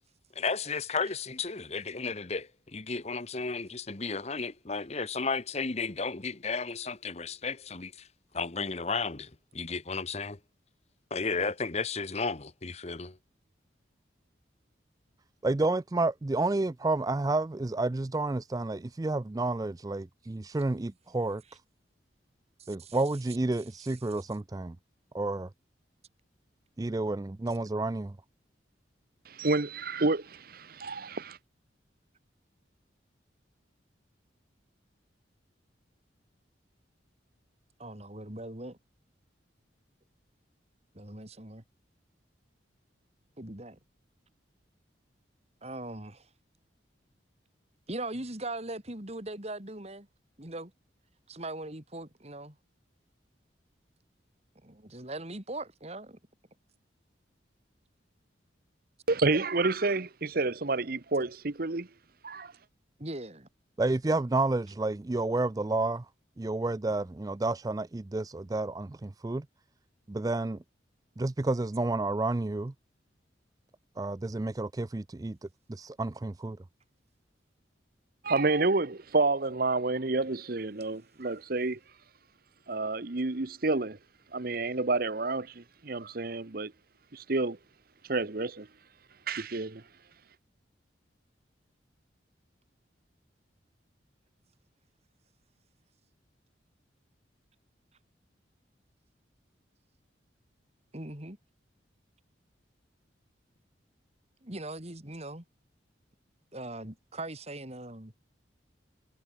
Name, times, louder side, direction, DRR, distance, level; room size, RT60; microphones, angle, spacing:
voice 1, 0.3-8.1 8.3-10.4 11.1-13.2, left 4 dB, 35° left, 1.2 m, -33 dB
voice 2, 15.4-21.6 22.7-24.8 25.1-25.5 26.8-28.2 63.8-66.1 66.4-69.5 70.1-70.6 71.2-72.7 74.0-76.6, right 2 dB, 20° right, 0.4 m, -30 dB
voice 3, 22.6-23.0 37.8-38.8 40.9-41.6 43.4-43.8 45.6-46.3 47.9-50.1 50.4-50.7 51.3-52.6 54.6-56.2 63.0-63.5 100.9-101.4 104.4-105.4 106.5-108.1, right 2 dB, 35° right, 3.1 m, -40 dB
voice 4, 29.3-31.4 59.1-61.9 62.2-62.5 78.2-81.8 82.7-84.0 84.3-86.7 87.1-87.6 88.1-88.7 89.3-89.8, right 3 dB, 50° right, 1.0 m, -29 dB
head